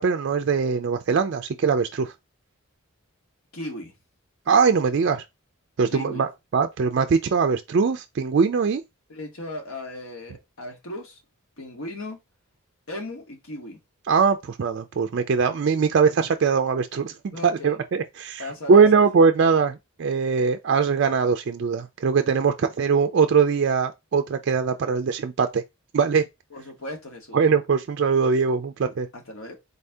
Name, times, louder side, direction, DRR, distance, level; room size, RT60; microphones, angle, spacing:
voice 1, 0.0-2.1 4.5-5.2 5.8-8.8 14.1-25.6 25.9-26.3 27.3-29.1, right 5 dB, 55° right, 0.3 m, -21 dB
voice 2, 3.5-3.9 5.9-6.3 8.2-8.3 9.1-11.2 11.6-12.2 12.9-13.8 17.3-17.8 18.4-19.0 26.5-27.4 29.1-29.5, left 1 dB, 70° left, 1.2 m, -37 dB
4.0 x 2.7 x 3.4 m
head